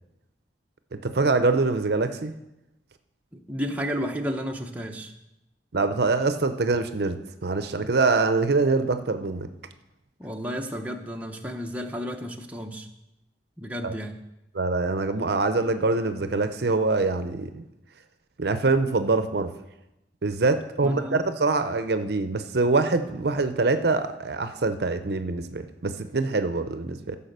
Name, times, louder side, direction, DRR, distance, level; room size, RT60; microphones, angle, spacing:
voice 1, 0.9-2.4 5.7-9.5 13.8-13.9 14.5-17.7 18.4-19.5 20.2-27.2, right 3 dB, 60° right, 10 dB, 0.7 m, -24 dB
voice 2, 3.3-5.1 10.2-12.9 13.6-14.2 20.8-21.2, equal, 10° right, 2 dB, 0.8 m, -32 dB
14.5 x 5.6 x 6.6 m, 0.91 s
head